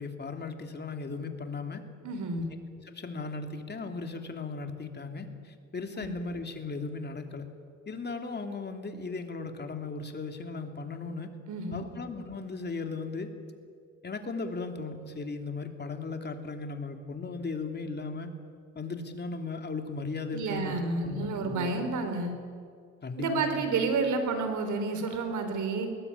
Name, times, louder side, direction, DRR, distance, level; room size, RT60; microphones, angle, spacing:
voice 1, 0.0-1.8 2.8-7.5 7.9-11.3 11.7-13.3 14.0-18.3 18.7-21.8 23.0-23.6, left 4 dB, 35° left, 5 dB, 3.1 m, -37 dB
voice 2, 2.0-2.5 11.5-11.8 20.3-22.3 23.2-25.9, right 3 dB, 75° right, 7 dB, 4.1 m, -30 dB
21.5 x 20.0 x 9.9 m, 2.2 s
cardioid pair, 90°, 30 cm